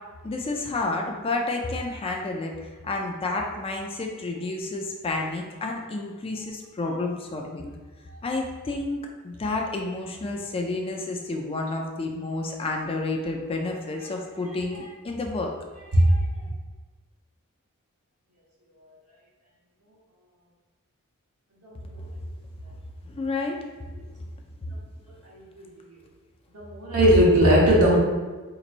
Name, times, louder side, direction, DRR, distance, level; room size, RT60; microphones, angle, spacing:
voice 1, 0.2-7.7 8.2-15.5 23.0-23.6 23.8-23.9 24.6-24.8, left 2 dB, 25° left, 1 dB, 0.4 m, -30 dB
voice 2, 15.9-16.5 21.6-22.0 25.2-25.6 26.5-28.0, equal, 85° right, -5 dB, 1.2 m, -20 dB
4.1 x 3.0 x 2.5 m, 1.3 s
head